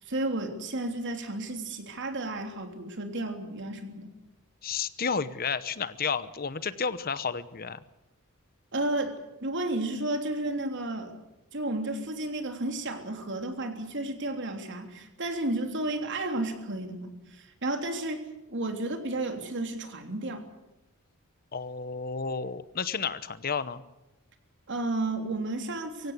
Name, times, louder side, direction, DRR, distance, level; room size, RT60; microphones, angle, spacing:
voice 1, 0.0-4.1 8.7-11.1 11.5-20.4 24.7-26.1, right 2 dB, 55° right, 5 dB, 3.3 m, -32 dB
voice 2, 4.6-7.8 21.5-23.8, left 5 dB, 45° left, 15 dB, 0.9 m, -31 dB
24.5 x 16.0 x 8.2 m, 1.0 s
head